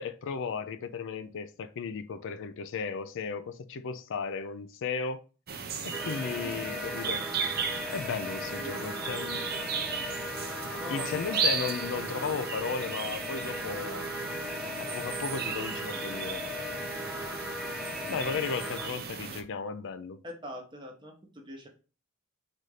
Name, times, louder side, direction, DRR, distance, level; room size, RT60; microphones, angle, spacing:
voice 1, 0.0-5.2 5.8-7.3 7.9-9.5 10.9-14.1 14.8-16.5 18.1-20.2, left 5 dB, 60° left, 0.4 m, -35 dB
sound 1, 5.5-19.4, right 6 dB, 45° right, 0.6 m, -36 dB
sound 2, 5.9-18.9, left 2 dB, ahead, 0.4 m, -38 dB
voice 2, 10.8-11.4 17.9-18.3 20.2-21.7, equal, 20° right, 1.1 m, -43 dB
4.1 x 2.6 x 4.7 m
head